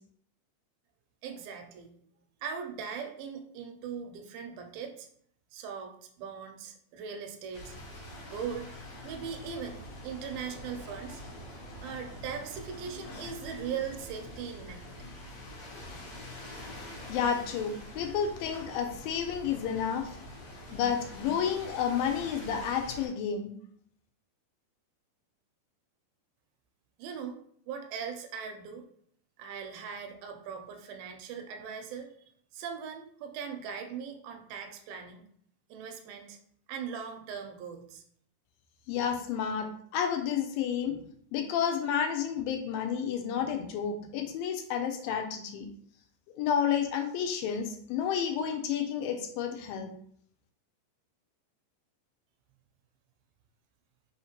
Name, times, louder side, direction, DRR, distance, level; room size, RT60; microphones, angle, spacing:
voice 1, 1.2-1.9 2.4-5.1 5.5-7.8 8.3-8.7 9.0-11.2 11.8-14.9 27.0-27.4 27.7-28.8 29.4-32.1 32.5-35.2 35.7-36.4 36.7-38.0, right 7 dB, 80° right, 5 dB, 2.3 m, -40 dB
sound 1, 7.5-23.1, left 1 dB, 60° left, 1.8 m, -45 dB
voice 2, 17.1-20.1 20.7-23.5 38.9-41.0 41.3-45.7 46.3-49.9, left 8 dB, 80° left, 5 dB, 2.2 m, -31 dB
5.5 x 2.9 x 2.9 m, 0.63 s
omnidirectional pair, 4.2 m